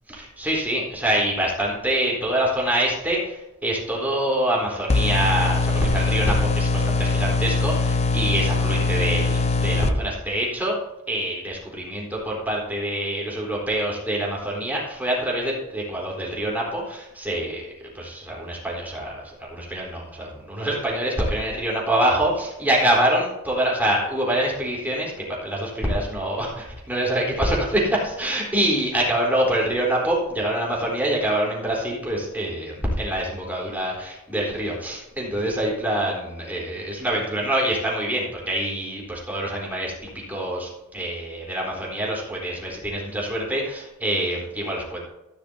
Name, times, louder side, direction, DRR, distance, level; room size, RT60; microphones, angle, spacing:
voice 1, 0.1-10.8 11.1-45.0, right 1 dB, 10° right, -4 dB, 4.1 m, -25 dB
sound 1, 4.9-9.9, left 3 dB, 30° left, 0.6 m, -22 dB
15.0 x 12.0 x 2.8 m, 0.96 s
head